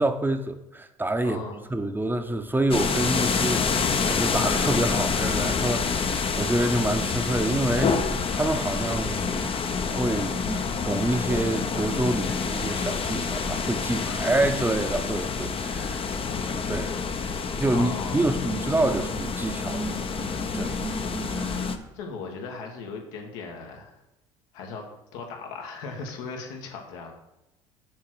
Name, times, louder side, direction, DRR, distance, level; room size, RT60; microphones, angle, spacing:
voice 1, 0.0-1.4 1.7-16.9 17.6-21.9, right 1 dB, 10° right, 1.0 m, -28 dB
voice 2, 1.2-1.6 17.7-18.2 21.9-24.0 24.5-24.9 25.1-27.1, left 4 dB, 75° left, 1.8 m, -37 dB
sound 1, 2.7-21.8, left 5 dB, 35° left, 0.9 m, -27 dB
7.0 x 4.7 x 6.3 m
hypercardioid pair, 60°, 16 cm